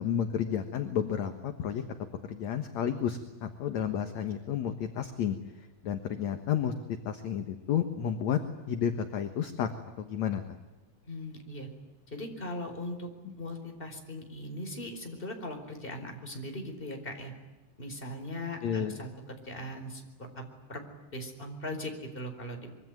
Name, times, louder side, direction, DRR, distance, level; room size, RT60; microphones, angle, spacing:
voice 1, 0.0-1.8 2.3-8.4 8.7-9.7 10.0-10.4 13.3-13.4 18.6-19.0, left 9 dB, 60° left, 7 dB, 2.3 m, -31 dB
voice 2, 11.1-11.7 12.1-13.1 13.4-17.3 17.8-20.0 20.3-20.4 20.7-20.8 21.1-22.7, left 1 dB, 15° left, 4 dB, 4.3 m, -39 dB
25.5 x 24.0 x 9.4 m, 1.1 s
omnidirectional pair, 4.3 m